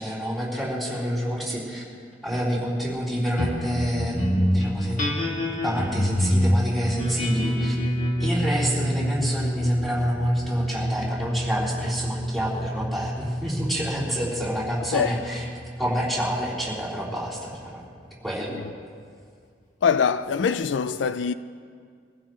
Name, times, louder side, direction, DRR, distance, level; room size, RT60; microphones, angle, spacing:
voice 1, 0.0-1.8 2.2-5.1 5.6-7.8 8.2-15.5 15.8-17.8 18.2-18.6, equal, ahead, 3.9 m, -28 dB
sound 1, 3.4-18.1, equal, 45° left, 2.4 m, -27 dB
voice 2, 19.8-21.3, left 6 dB, 80° left, 0.4 m, -23 dB
23.5 x 15.5 x 3.1 m
head